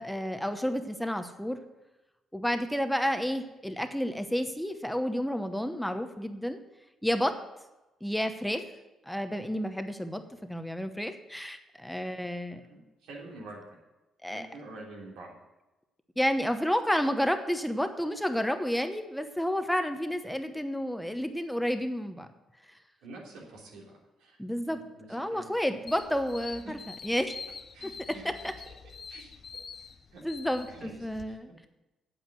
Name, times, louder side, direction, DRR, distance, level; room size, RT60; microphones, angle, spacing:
voice 1, 0.0-1.6 2.3-6.6 7.0-7.4 8.0-8.6 9.1-12.6 14.2-14.5 16.2-22.3 24.4-24.8 25.1-27.4 27.8-28.5 30.2-31.5, equal, 5° left, 8 dB, 0.9 m, -31 dB
voice 2, 12.7-13.6 14.3-15.3 23.0-23.9 24.2-25.8 26.6-26.7 27.7-28.2 29.1-29.3 30.1-30.2 30.7-31.0 31.3-31.4, right 2 dB, 90° right, -2 dB, 3.2 m, -47 dB
sound 1, 25.9-31.2, left 5 dB, 45° left, 0.7 m, -46 dB
8.7 x 8.1 x 7.6 m, 1.0 s
cardioid pair, 90°, 0 cm